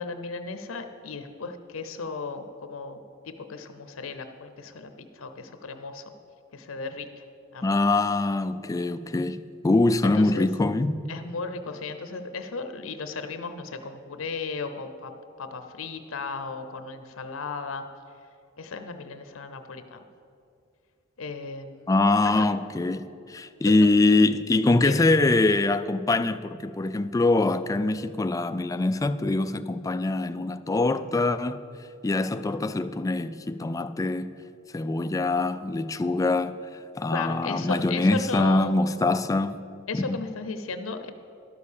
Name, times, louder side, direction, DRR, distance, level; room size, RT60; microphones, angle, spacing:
voice 1, 0.0-6.1 6.5-7.2 7.5-7.8 10.0-10.5 11.1-15.1 15.4-17.8 18.6-20.0 21.2-21.9 22.2-22.5 23.6-23.7 24.8-25.0 37.1-38.7 39.9-41.1, left 4 dB, 70° left, 0.7 m, -35 dB
voice 2, 7.6-9.4 9.6-11.0 21.9-31.6 32.0-34.3 34.7-36.6 37.0-39.6 39.9-40.2, left 2 dB, 15° left, 0.3 m, -23 dB
12.0 x 6.5 x 7.1 m
head